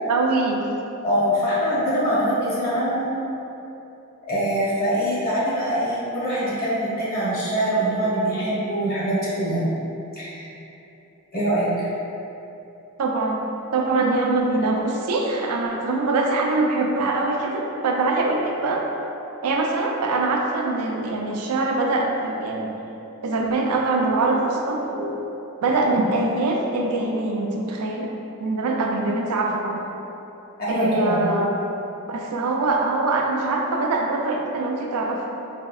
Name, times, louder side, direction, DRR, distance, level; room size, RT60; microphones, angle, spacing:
voice 1, 0.1-0.6 13.0-18.8 19.4-22.8 23.2-25.2 25.6-28.1 28.4-29.9 30.7-31.5 32.1-35.2, right 2 dB, 90° right, 0 dB, 0.4 m, -23 dB
voice 2, 1.0-3.1 4.3-9.6 10.2-10.5 11.3-11.9 30.6-31.2, equal, 40° left, -9 dB, 1.1 m, -23 dB
4.2 x 2.7 x 2.4 m, 2.9 s
head